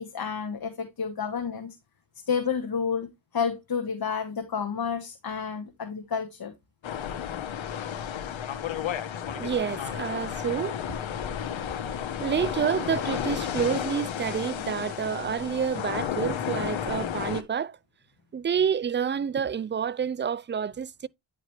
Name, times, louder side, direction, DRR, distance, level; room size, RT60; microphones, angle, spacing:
voice 1, 0.0-1.7 2.3-6.5, left 6 dB, 50° left, 1.4 m, -30 dB
sound 1, 6.8-17.4, left 9 dB, 80° left, 1.1 m, -32 dB
voice 2, 9.3-10.8 12.2-17.8 18.3-21.1, right 7 dB, 25° right, 0.4 m, -28 dB
10.0 x 5.1 x 3.1 m
cardioid pair, 65°, 46 cm